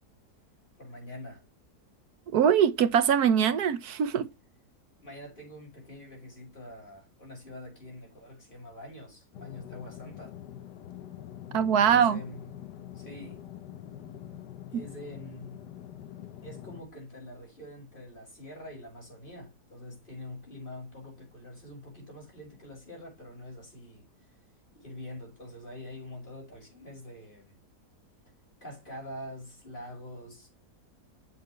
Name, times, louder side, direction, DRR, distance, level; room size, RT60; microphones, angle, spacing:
voice 1, 0.8-1.5 5.0-10.4 11.8-13.4 14.7-15.6 16.4-24.4 24.7-27.5 28.6-30.6, left 1 dB, 30° left, 6.3 m, -45 dB
voice 2, 2.3-4.3 11.5-12.2, right 8 dB, 70° right, 1.4 m, -22 dB
sound 1, 9.3-16.8, left 11 dB, 85° left, 1.5 m, -45 dB
8.0 x 7.8 x 3.2 m
omnidirectional pair, 1.8 m